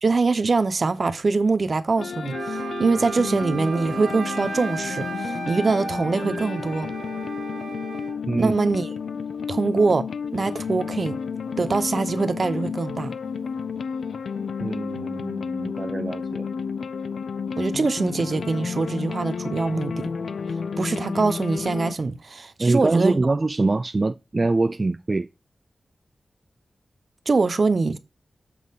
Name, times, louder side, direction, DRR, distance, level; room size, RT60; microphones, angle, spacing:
voice 1, 0.0-6.9 8.4-8.9 9.5-10.1 10.3-11.2 11.6-13.1 17.6-20.1 20.8-23.3 27.3-28.0, right 3 dB, 50° right, 0.8 m, -23 dB
sound 1, 2.0-21.9, left 6 dB, 90° left, 0.4 m, -31 dB
Wind instrument woodwind instrument, 2.3-8.2, right 4 dB, 85° right, 1.4 m, -34 dB
voice 2, 14.6-16.5 22.6-25.3, right 3 dB, 30° right, 0.3 m, -24 dB
7.4 x 6.1 x 3.7 m
wide cardioid pair, 115°, 0 cm